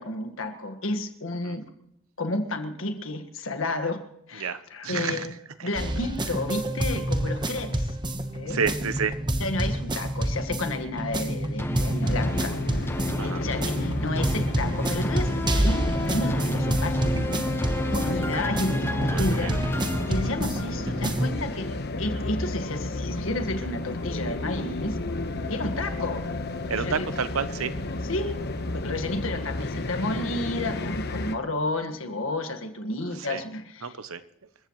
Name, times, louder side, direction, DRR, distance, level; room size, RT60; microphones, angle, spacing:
voice 1, 0.0-1.6 2.2-4.0 4.3-5.3 5.6-7.9 8.3-8.6 9.4-12.5 13.2-17.3 17.9-25.0 25.5-26.2 26.7-27.0 28.1-28.4 28.7-33.9, left 2 dB, 70° left, 7 dB, 1.7 m, -31 dB
voice 2, 4.4-5.3 5.6-5.7 8.5-9.1 13.2-13.4 19.1-19.6 26.7-27.7 33.3-33.4 33.8-34.2, right 6 dB, 85° right, 12 dB, 0.9 m, -29 dB
sound 1, 5.8-21.3, right 1 dB, 20° right, 1.2 m, -28 dB
sound 2, 11.6-21.0 21.4-21.5, left 1 dB, 10° left, 0.7 m, -34 dB
sound 3, 12.0-31.4, left 2 dB, 50° left, 1.2 m, -32 dB
27.5 x 15.0 x 3.2 m, 0.81 s
head